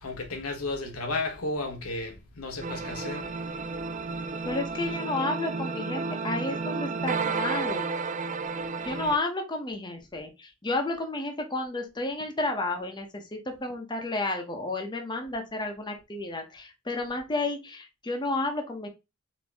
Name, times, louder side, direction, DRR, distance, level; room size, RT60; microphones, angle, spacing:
voice 1, 0.0-3.3, left 2 dB, 85° left, 1.0 m, -33 dB
sound 1, 2.6-9.2, right 4 dB, 35° right, 0.4 m, -32 dB
voice 2, 4.4-7.9 8.8-18.9, left 2 dB, 20° left, 0.8 m, -31 dB
4.3 x 2.8 x 3.4 m
head